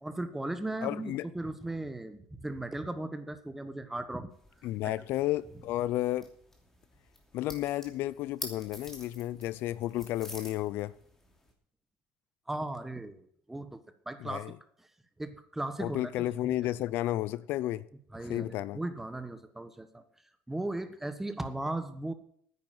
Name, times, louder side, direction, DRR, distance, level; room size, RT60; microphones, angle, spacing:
voice 1, 0.0-4.3 4.8-4.9 12.5-13.8 14.1-14.4 15.2-16.0 16.4-16.5 18.1-20.0 20.5-22.1, right 2 dB, 5° right, 1.3 m, -37 dB
voice 2, 0.8-1.3 4.6-6.3 7.3-10.9 14.2-14.5 15.8-17.9 18.3-18.8, left 14 dB, 65° left, 0.5 m, -32 dB
sound 1, 4.3-11.5, left 1 dB, 10° left, 2.8 m, -49 dB
9.9 x 9.3 x 7.7 m
cardioid pair, 130°, 4 cm